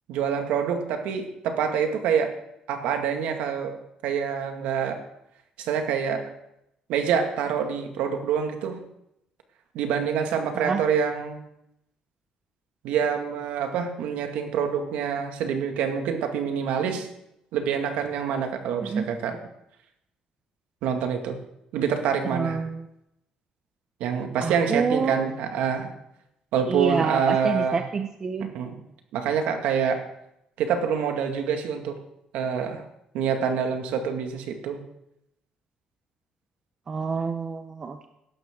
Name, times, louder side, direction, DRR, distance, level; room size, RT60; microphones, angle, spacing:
voice 1, 0.1-2.4 2.7-5.0 5.6-6.3 6.9-8.8 9.7-11.4 12.8-17.1 17.5-19.4 20.8-21.4 21.7-22.6 24.0-25.9 26.5-27.8 28.5-28.8 29.1-30.0 30.6-32.0 32.3-32.8 33.1-34.8, right 7 dB, 85° right, 4 dB, 2.0 m, -26 dB
voice 2, 10.5-10.9 18.8-19.1 22.3-22.8 24.4-25.3 26.7-28.5 36.9-38.1, right 5 dB, 25° right, 7 dB, 0.7 m, -27 dB
17.0 x 12.5 x 3.8 m, 0.82 s
cardioid pair, 160°, 2 cm